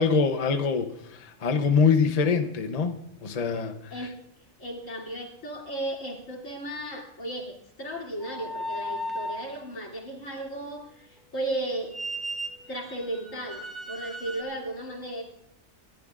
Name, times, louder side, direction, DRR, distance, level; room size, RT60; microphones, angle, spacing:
voice 1, 0.0-4.1, left 5 dB, 35° left, 7 dB, 0.7 m, -24 dB
voice 2, 4.6-12.0 12.7-13.6 13.9-15.2, right 1 dB, 70° left, -2 dB, 3.2 m, -35 dB
sound 1, 8.2-9.5 11.9-14.4, equal, ahead, 1.0 m, -35 dB
28.0 x 12.0 x 2.5 m, 0.81 s
omnidirectional pair, 1.4 m